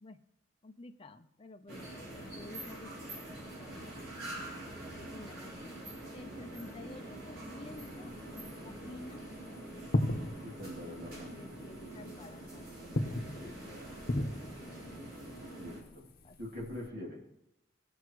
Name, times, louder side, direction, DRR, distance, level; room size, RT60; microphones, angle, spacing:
voice 1, 0.6-3.8 5.0-5.8 6.1-8.1 8.6-9.3 11.1-12.9 16.2-16.4, left 2 dB, 30° left, 5 dB, 0.6 m, -51 dB
sound 1, 1.7-15.8, right 1 dB, 90° right, 3.9 m, -45 dB
sound 2, 7.6-16.9, left 1 dB, 50° left, 1.0 m, -39 dB
voice 2, 10.4-11.6 13.3-14.0 15.5-16.1 16.4-17.2, left 1 dB, 60° right, -2 dB, 2.9 m, -45 dB
19.5 x 7.0 x 3.1 m, 0.89 s
head